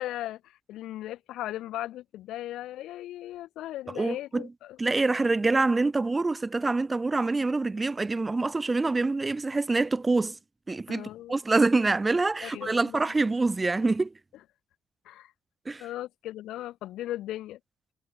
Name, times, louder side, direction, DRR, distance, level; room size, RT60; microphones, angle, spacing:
voice 1, 0.0-4.8 10.9-11.4 12.4-13.1 15.0-15.3 15.8-17.6, left 14 dB, 85° left, 0.7 m, -37 dB
voice 2, 4.0-4.5 4.8-10.4 10.7-14.1 15.7-15.8, right 3 dB, 20° right, 0.6 m, -26 dB
cardioid pair, 90°, 0 cm